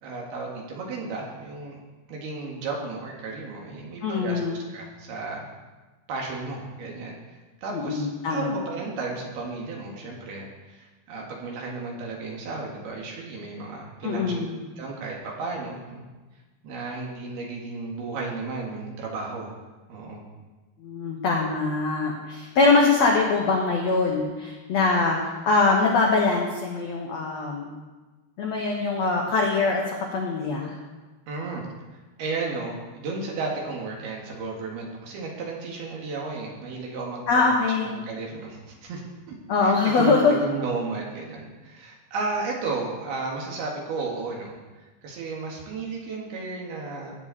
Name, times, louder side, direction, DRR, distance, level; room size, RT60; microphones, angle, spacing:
voice 1, 0.0-1.8 2.1-5.5 6.1-14.5 14.8-16.0 16.6-19.5 19.9-20.2 31.3-31.6 32.2-37.5 37.8-39.4 39.6-40.2 40.4-47.2, right 3 dB, 70° right, -1 dB, 3.7 m, -34 dB
voice 2, 4.0-4.7 7.7-8.6 14.0-14.6 20.8-25.2 25.4-27.7 28.4-30.8 37.3-37.9 39.5-40.4, left 3 dB, 85° left, -1 dB, 1.5 m, -23 dB
16.5 x 8.9 x 4.2 m, 1.2 s
omnidirectional pair, 4.9 m